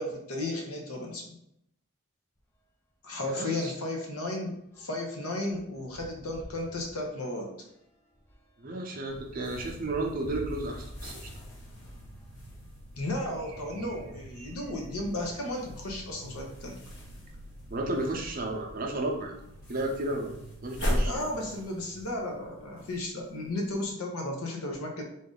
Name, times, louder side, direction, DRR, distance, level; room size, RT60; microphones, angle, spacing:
voice 1, 0.0-1.4 3.0-7.5 13.0-16.8 21.0-25.0, left 1 dB, 85° left, 1 dB, 0.9 m, -34 dB
sound 1, 2.4-2.5 2.9-3.1 3.4-12.8 13.6-14.9 15.6-15.7 15.9-16.0 17.7-17.8 18.5-18.8 19.1-20.4, equal, 10° left, 0.3 m, -50 dB
voice 2, 3.2-3.7 8.6-11.3 17.7-19.3 19.7-21.2, right 2 dB, 40° right, 1 dB, 0.6 m, -33 dB
sound 2, 9.1-21.1, right 1 dB, 75° right, 0.7 m, -49 dB
sound 3, 9.4-23.9, equal, 55° left, 0.9 m, -40 dB
3.8 x 2.6 x 3.8 m, 0.78 s
head